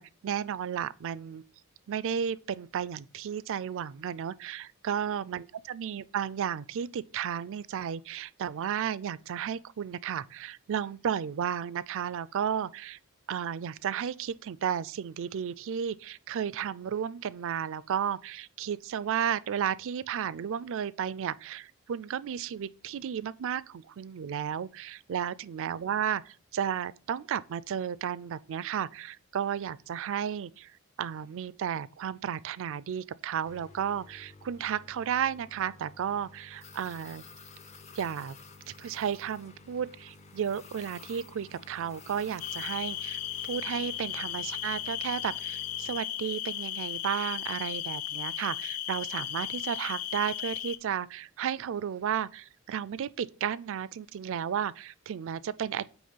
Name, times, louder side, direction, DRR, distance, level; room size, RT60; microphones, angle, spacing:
voice 1, 0.0-1.4 1.9-13.0 13.3-30.7 31.0-37.2 38.0-38.3 38.8-55.9, right 8 dB, 60° right, 0.4 m, -33 dB
sound 1, 33.4-46.0, left 3 dB, 30° left, 0.6 m, -52 dB
sound 2, 42.4-50.8, left 12 dB, 80° left, 0.5 m, -36 dB
8.7 x 3.0 x 5.5 m
head